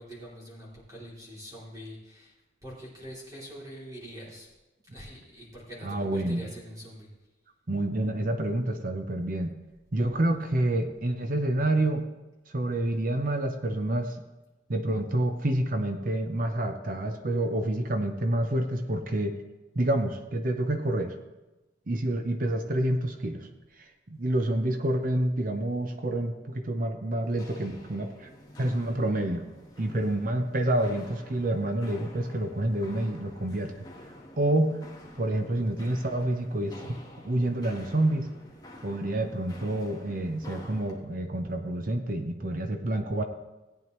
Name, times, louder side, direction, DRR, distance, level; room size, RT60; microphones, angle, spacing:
voice 1, 0.0-2.3 2.6-4.5 4.9-7.1 32.1-32.2, equal, 20° right, -6 dB, 2.9 m, -44 dB
voice 2, 5.8-6.4 7.7-9.5 9.9-12.0 12.5-14.2 14.7-19.4 19.7-21.1 21.9-23.5 23.8-28.3 28.6-29.5 29.8-33.7 34.4-34.8 35.2-37.0 37.2-38.3 38.8-43.2, right 1 dB, 45° right, 7 dB, 0.7 m, -28 dB
Walk footsteps, 27.2-41.0, left 1 dB, 20° left, 1.2 m, -49 dB
16.5 x 9.2 x 3.1 m, 1.0 s
head